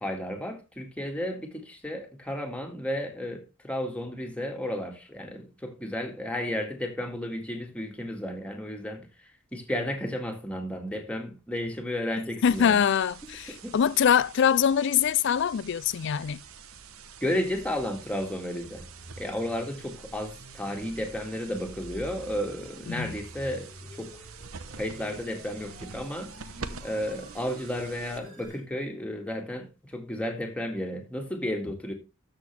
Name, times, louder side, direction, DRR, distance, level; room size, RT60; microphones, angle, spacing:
voice 1, 0.0-9.1 9.5-12.8 13.6-13.8 17.2-18.8 19.2-24.2 24.7-26.3 26.8-31.9, left 1 dB, 5° left, 1.9 m, -33 dB
voice 2, 12.4-16.4 22.9-23.1, left 8 dB, 60° left, 0.4 m, -23 dB
sound 1, 12.5-28.5, right 5 dB, 90° right, 0.9 m, -46 dB
sound 2, 16.5-28.6, equal, 40° right, 4.4 m, -49 dB
13.0 x 6.6 x 3.4 m
head